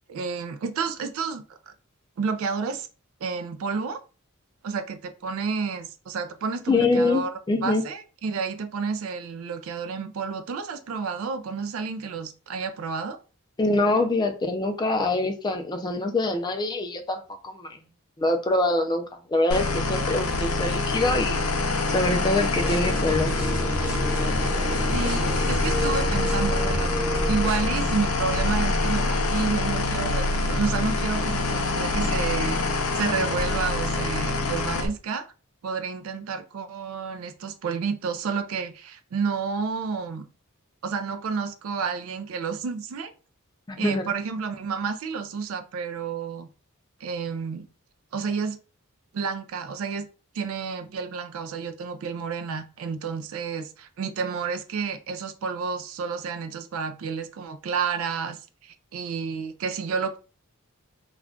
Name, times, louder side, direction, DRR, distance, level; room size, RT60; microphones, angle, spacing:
voice 1, 0.1-1.7 2.2-2.9 3.2-4.0 4.6-7.3 7.6-13.2 24.9-32.6 32.9-35.3 35.6-40.3 40.8-43.1 43.8-46.5 47.0-47.7 48.1-48.6 49.1-50.1 50.3-60.2, right 5 dB, 70° right, 0.3 m, -30 dB
voice 2, 6.7-7.8 13.6-17.8 18.2-23.3 43.7-44.0, left 2 dB, 20° left, 0.4 m, -25 dB
sound 1, 19.5-34.9, left 2 dB, 80° left, 0.6 m, -25 dB
sound 2, 22.6-27.9, equal, 5° right, 0.7 m, -31 dB
2.4 x 2.2 x 3.6 m
head